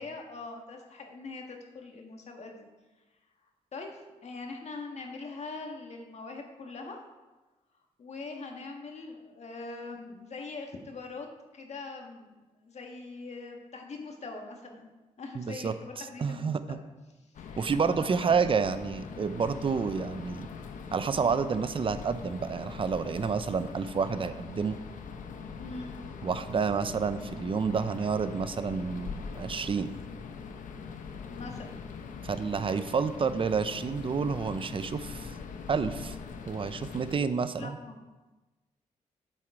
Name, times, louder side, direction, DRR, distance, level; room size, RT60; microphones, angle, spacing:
voice 1, 0.0-2.7 3.7-7.0 8.0-11.3 11.5-14.9 15.2-16.8 17.1-18.4 25.6-25.9 31.3-31.8 37.6-38.0, left 3 dB, 55° left, 2 dB, 1.5 m, -42 dB
voice 2, 15.3-15.7 16.2-16.8 17.6-20.5 20.9-24.8 26.2-29.9 32.2-35.3 35.7-36.2 36.5-37.7, right 5 dB, 40° right, 12 dB, 0.6 m, -29 dB
sound 1, 17.3-37.2, left 5 dB, 75° left, 0.8 m, -42 dB
7.8 x 7.7 x 4.7 m, 1.2 s
cardioid pair, 80°, 13 cm